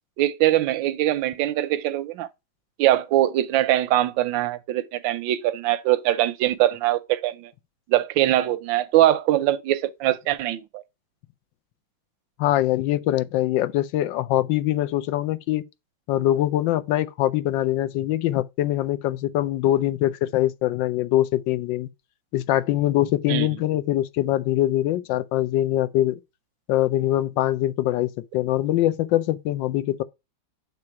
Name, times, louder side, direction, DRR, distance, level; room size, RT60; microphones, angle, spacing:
voice 1, 0.2-2.3 2.8-7.5 7.9-10.8 23.3-23.5, right 14 dB, 85° right, 1.3 m, -22 dB
voice 2, 12.4-15.6 16.1-21.9 22.3-26.2 26.7-30.0, left 14 dB, 80° left, 1.3 m, -23 dB
6.8 x 3.4 x 4.7 m
omnidirectional pair, 2.0 m